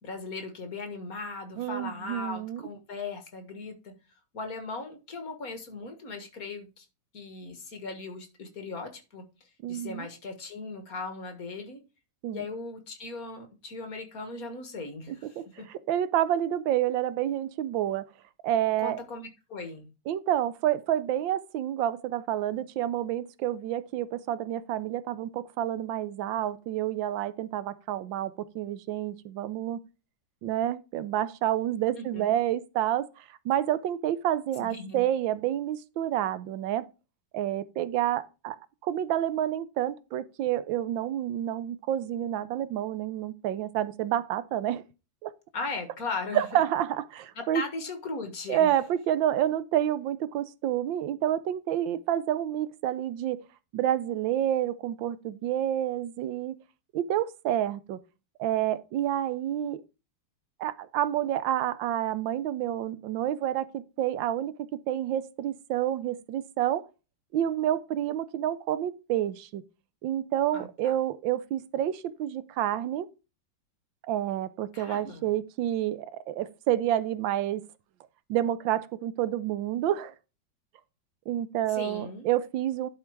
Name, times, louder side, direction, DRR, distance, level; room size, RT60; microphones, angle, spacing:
voice 1, 0.0-4.0 4.3-6.9 7.1-11.8 12.3-15.7 18.8-19.9 32.0-32.3 34.6-35.0 45.5-46.6 47.4-48.7 70.5-70.9 74.7-75.3 81.7-82.3, left 3 dB, 50° left, 1.9 m, -38 dB
voice 2, 1.6-2.6 9.6-10.1 12.2-12.4 15.1-15.4 15.7-18.1 18.4-19.0 20.1-29.8 30.4-36.9 37.3-38.6 38.8-44.8 45.2-45.3 46.3-47.6 48.5-53.4 53.7-56.6 56.9-58.0 58.4-59.8 60.6-66.9 67.3-69.6 70.0-73.1 74.1-77.6 78.3-80.1 81.3-82.9, right 11 dB, 90° right, 1.4 m, -29 dB
11.0 x 4.5 x 4.6 m
omnidirectional pair, 2.0 m